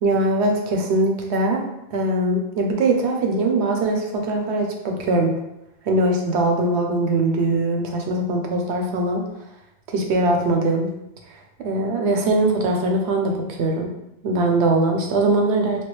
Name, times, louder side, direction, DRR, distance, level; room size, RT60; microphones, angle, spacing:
voice 1, 0.0-1.6 1.9-5.3 5.8-9.2 9.9-10.9 11.6-13.9 14.2-15.8, right 2 dB, 80° right, 2 dB, 0.9 m, -21 dB
3.5 x 2.3 x 3.0 m, 0.87 s
omnidirectional pair, 1.1 m